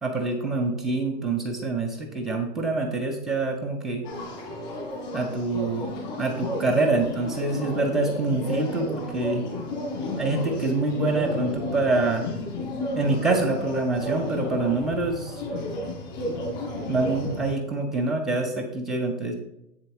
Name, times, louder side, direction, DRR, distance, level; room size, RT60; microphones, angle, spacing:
voice 1, 0.0-4.0 5.1-5.9 6.2-9.4 10.2-12.3 13.0-15.4 16.9-19.3, right 3 dB, ahead, 3 dB, 0.3 m, -26 dB
sound 1, 4.0-17.5, left 1 dB, 25° left, 2.2 m, -32 dB
8.0 x 7.1 x 3.8 m, 0.83 s
hypercardioid pair, 155°, 48 cm